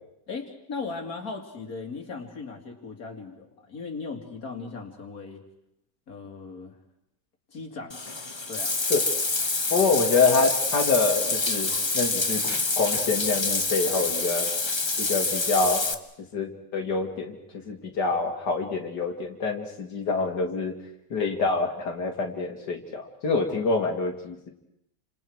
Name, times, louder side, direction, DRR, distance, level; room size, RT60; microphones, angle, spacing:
voice 1, 0.3-5.4 6.1-6.7 7.5-7.9 8.5-8.8, left 4 dB, 60° left, 3 dB, 3.0 m, -37 dB
Bathtub (filling or washing), 7.9-15.9, left 3 dB, 20° left, 0.8 m, -27 dB
voice 2, 9.7-12.4 12.8-14.5 15.0-15.9 16.3-17.4 17.7-20.7 21.1-24.5, left 4 dB, 85° left, 3 dB, 2.7 m, -26 dB
29.5 x 26.5 x 4.7 m, 0.76 s
omnidirectional pair, 1.8 m